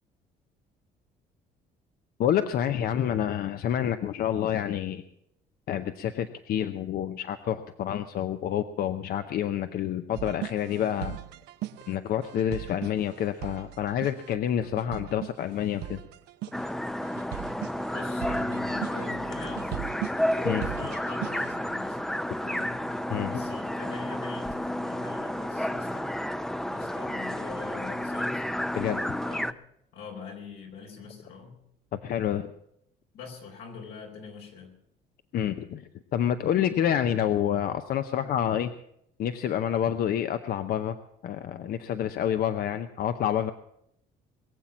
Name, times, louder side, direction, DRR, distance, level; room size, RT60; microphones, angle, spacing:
voice 1, 2.2-5.0 5.7-11.2 11.9-16.0 20.4-20.7 23.1-23.4 28.8-29.0 32.0-32.5 35.3-38.7 39.2-41.0 41.2-43.5, left 10 dB, 65° left, 9 dB, 0.7 m, -28 dB
sound 1, 10.1-21.7, right 14 dB, 85° right, 0.7 m, -39 dB
sound 2, 16.5-29.5, left 1 dB, 5° left, 0.5 m, -31 dB
voice 2, 17.9-19.9 20.5-22.8 23.3-26.1 26.7-28.4 29.1-29.5 29.9-31.6 33.1-34.7, left 5 dB, 90° left, 1 dB, 4.4 m, -43 dB
22.0 x 7.5 x 7.2 m, 0.76 s
cardioid pair, 110°, 17 cm